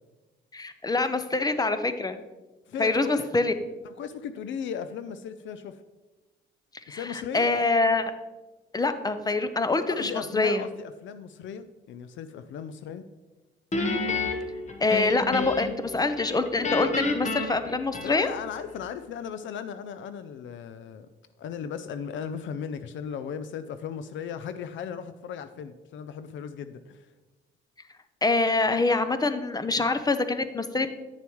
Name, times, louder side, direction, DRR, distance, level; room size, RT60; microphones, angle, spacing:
voice 1, 0.5-2.2 2.8-3.5 6.9-8.1 8.7-10.7 14.8-18.3 28.2-31.0, left 3 dB, 20° left, 10 dB, 0.6 m, -25 dB
voice 2, 2.7-3.3 3.8-5.8 6.9-7.5 9.9-13.0 17.9-21.1 21.4-27.1, left 7 dB, 75° left, 11 dB, 0.5 m, -36 dB
Guitar, 13.7-15.9 16.2-18.5, left 3 dB, 35° left, 1.0 m, -29 dB
9.0 x 6.9 x 3.1 m, 1.2 s
cardioid pair, 90°, 20 cm